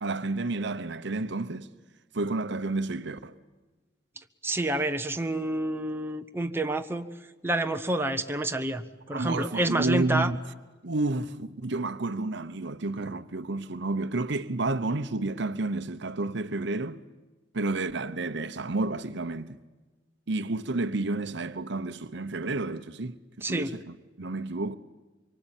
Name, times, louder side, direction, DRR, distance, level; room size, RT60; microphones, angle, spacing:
voice 1, 0.0-1.7 2.1-3.4 9.1-10.4 10.8-17.0 17.5-19.6 20.3-24.7, right 2 dB, 65° right, 0.9 m, -30 dB
voice 2, 4.4-7.1 7.4-10.3 23.4-23.7, right 1 dB, 10° right, 1.1 m, -28 dB
24.5 x 24.0 x 9.0 m
head